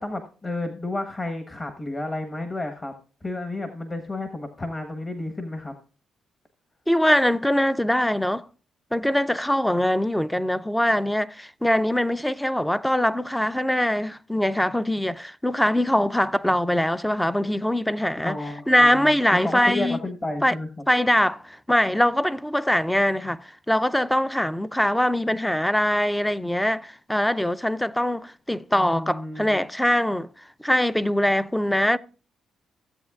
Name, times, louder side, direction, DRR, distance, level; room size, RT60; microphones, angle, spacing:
voice 1, 0.0-2.9 3.2-5.7 18.2-20.7 28.8-29.6, left 2 dB, 30° left, 1.2 m, -31 dB
voice 2, 6.9-8.5 8.9-18.4 18.7-20.0 20.4-20.6 20.9-30.3 30.6-32.0, left 1 dB, 5° left, 0.4 m, -22 dB
16.0 x 7.9 x 2.4 m
cardioid pair, 90°, 0 cm